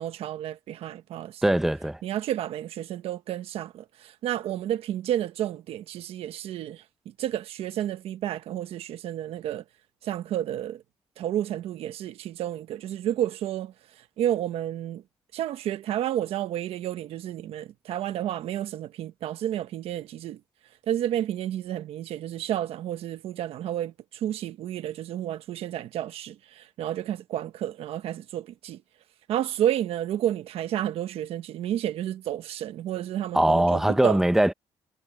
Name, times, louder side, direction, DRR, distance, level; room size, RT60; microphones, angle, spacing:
voice 1, 0.0-1.4 2.0-3.8 4.2-6.8 7.2-9.6 10.0-10.8 11.2-13.7 14.2-15.0 15.3-20.4 20.9-23.9 24.2-28.8 29.3-34.2, right 11 dB, 90° right, 1.2 m, -31 dB
voice 2, 1.4-2.0 33.3-34.5, right 1 dB, 5° right, 0.8 m, -21 dB
cardioid pair, 100°, 10 cm